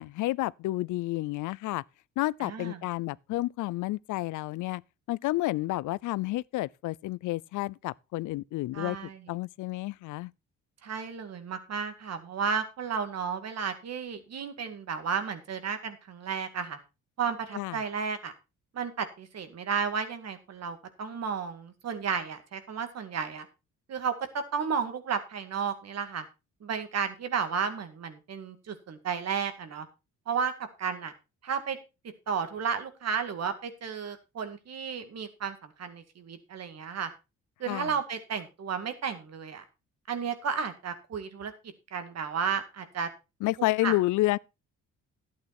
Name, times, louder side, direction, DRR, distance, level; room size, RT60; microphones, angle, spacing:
voice 1, 0.0-1.8 2.2-4.8 5.1-9.0 9.3-10.3 17.5-17.8 37.7-37.9 43.4-44.4, left 18 dB, 80° left, 0.5 m, -30 dB
voice 2, 2.4-2.8 8.7-9.2 10.8-16.8 17.2-18.3 18.7-23.5 23.9-26.2 26.6-29.9 30.3-31.1 31.4-31.8 32.3-37.1 37.6-39.6 40.1-41.5 41.9-43.1 43.8-43.9, right 6 dB, 60° right, 2.1 m, -33 dB
11.5 x 8.6 x 4.3 m
cardioid pair, 90°, 30 cm